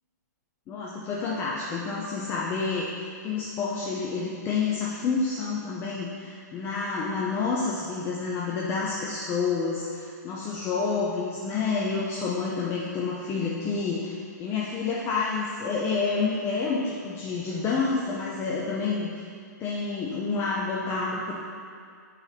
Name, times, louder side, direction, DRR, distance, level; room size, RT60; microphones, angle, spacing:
voice 1, 0.7-19.1 19.6-21.3, left 4 dB, 25° left, -5 dB, 0.7 m, -29 dB
6.7 x 4.2 x 5.7 m, 2.3 s
hypercardioid pair, 135°, 10 cm